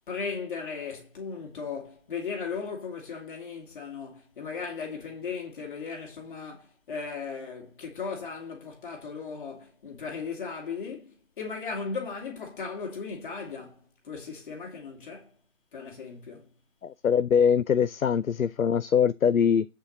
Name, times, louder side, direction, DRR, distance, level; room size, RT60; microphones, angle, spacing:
voice 1, 0.1-15.3 15.7-16.5, left 5 dB, 35° left, 2.4 m, -37 dB
voice 2, 16.8-19.7, left 7 dB, 75° left, 0.6 m, -23 dB
8.5 x 4.6 x 6.4 m
figure-of-eight pair, 145°, 42 cm